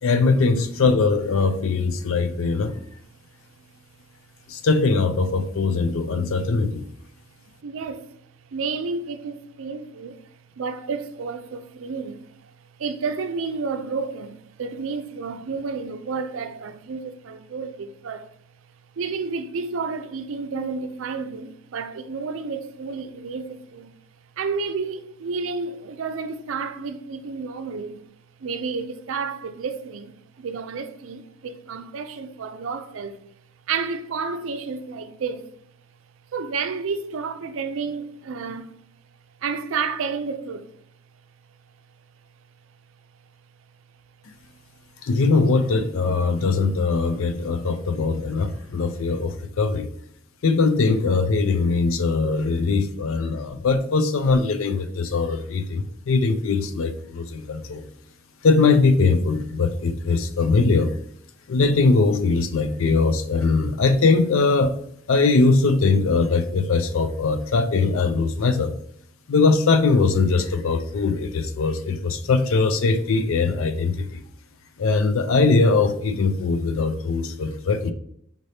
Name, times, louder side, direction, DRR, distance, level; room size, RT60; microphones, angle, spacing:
voice 1, 0.0-2.8 4.5-6.8 45.0-49.9 50.4-57.8 58.4-60.9 61.5-64.7 65.1-68.7 69.3-74.2 74.8-77.9, left 4 dB, 70° left, 0.4 m, -21 dB
voice 2, 7.6-8.0 8.5-10.2 10.6-12.5 12.8-18.3 19.0-23.9 24.4-28.0 28.4-33.2 33.7-35.5 36.3-38.7 39.4-40.7 46.4-46.5 47.3-47.4 48.6-48.7, right 5 dB, 70° right, 0.4 m, -31 dB
5.1 x 2.7 x 3.2 m
head